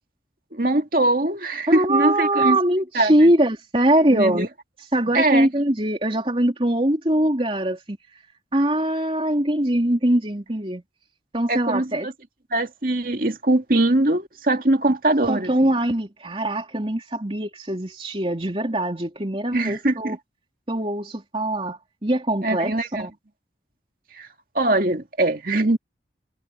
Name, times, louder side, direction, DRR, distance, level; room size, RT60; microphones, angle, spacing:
voice 1, 0.5-2.6 2.9-3.1 4.1-4.5 5.1-5.5 11.5-12.1 12.5-15.5 19.5-20.2 22.4-23.1 24.2-24.3 24.5-25.8, right 2 dB, 50° right, 2.2 m, -22 dB
voice 2, 1.7-4.5 4.9-8.0 8.5-10.8 11.3-12.1 15.3-20.2 20.7-23.1, right 1 dB, 30° right, 3.4 m, -22 dB
head